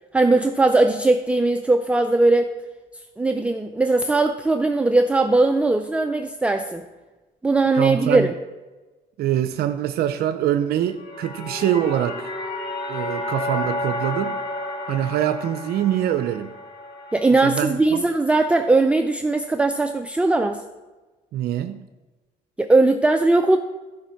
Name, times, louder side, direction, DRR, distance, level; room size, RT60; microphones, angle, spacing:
voice 1, 0.1-2.5 3.2-6.8 7.4-8.3 17.1-20.6 22.6-23.6, right 2 dB, 5° right, 6 dB, 0.4 m, -19 dB
voice 2, 7.7-8.3 9.2-12.3 12.9-14.4 14.9-16.5 17.4-18.1 21.3-21.8, right 11 dB, 70° right, 9 dB, 0.6 m, -24 dB
sound 1, 10.8-17.7, left 1 dB, 90° left, 2.1 m, -31 dB
12.0 x 5.1 x 5.7 m, 1.2 s
cardioid pair, 110°, 17 cm